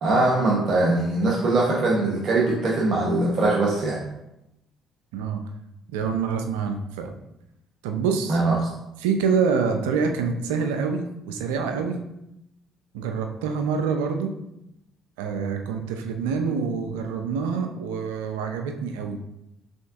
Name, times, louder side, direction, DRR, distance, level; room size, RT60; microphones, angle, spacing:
voice 1, 0.0-4.0 8.3-8.7, right 2 dB, 55° right, -3 dB, 0.8 m, -22 dB
voice 2, 5.9-7.1 7.8-8.4 9.0-12.0 12.9-14.3 15.2-19.2, right 5 dB, 85° right, 5 dB, 0.4 m, -26 dB
5.1 x 3.4 x 2.4 m, 0.87 s
hypercardioid pair, 55°, 0 cm